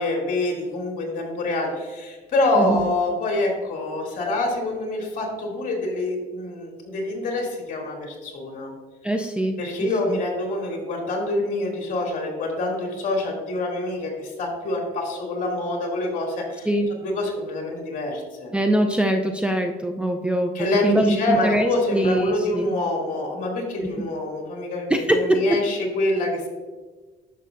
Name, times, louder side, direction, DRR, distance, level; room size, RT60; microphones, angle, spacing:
voice 1, 0.0-8.7 9.6-16.7 17.0-18.5 20.5-26.5, left 2 dB, 50° left, 0 dB, 2.5 m, -26 dB
voice 2, 2.6-2.9 9.0-9.6 10.1-10.2 16.7-16.9 18.5-22.7 24.9-25.4, right 1 dB, 5° right, 3 dB, 0.5 m, -22 dB
11.0 x 6.6 x 2.5 m, 1.4 s
cardioid pair, 110°, 17 cm